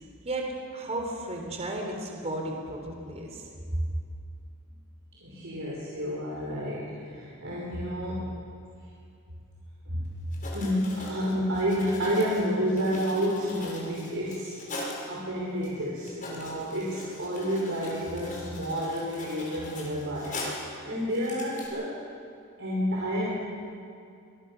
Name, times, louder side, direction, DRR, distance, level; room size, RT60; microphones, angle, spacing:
voice 1, 0.2-3.4 3.7-3.8, right 1 dB, 30° right, 2 dB, 3.6 m, -33 dB
voice 2, 5.2-8.3 9.9-10.1 10.5-14.5 15.1-22.0 22.6-23.3, equal, 65° right, -5 dB, 5.3 m, -30 dB
Writing, 10.0-10.1 10.3-15.1 15.6-15.7 16.0-20.7 21.1-21.7, left 2 dB, 40° left, 6.7 m, -41 dB
25.0 x 22.5 x 7.0 m, 2.4 s
head